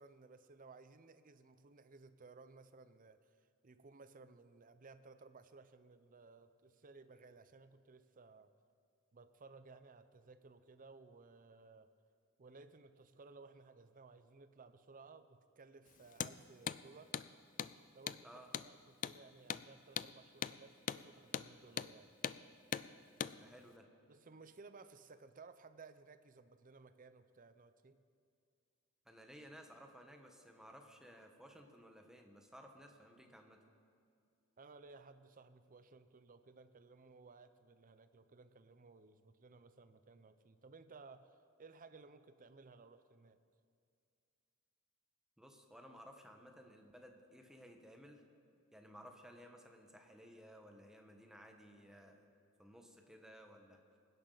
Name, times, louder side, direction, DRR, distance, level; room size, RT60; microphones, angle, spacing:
voice 1, 0.0-3.3 3.6-8.5 9.1-11.9 12.4-17.2 17.9-22.1 24.1-28.0 34.6-43.4, right 4 dB, 40° right, 11 dB, 0.6 m, -59 dB
Hammer, 16.1-16.4 16.7-16.8 17.1-17.3 17.6-17.7 18.1-18.2 18.5-18.7 19.0-19.2 19.5-19.7 20.0-20.1 20.4-20.6 20.9-21.0 21.3-21.5 21.8-21.9 22.2-22.4 22.7-22.9 23.2-23.4, left 9 dB, 40° left, 0.3 m, -40 dB
voice 2, 23.2-23.9 29.0-33.6 45.4-48.2 48.7-52.3 52.6-53.8, equal, 5° right, 3 dB, 1.2 m, -57 dB
23.0 x 10.5 x 4.0 m, 2.3 s
head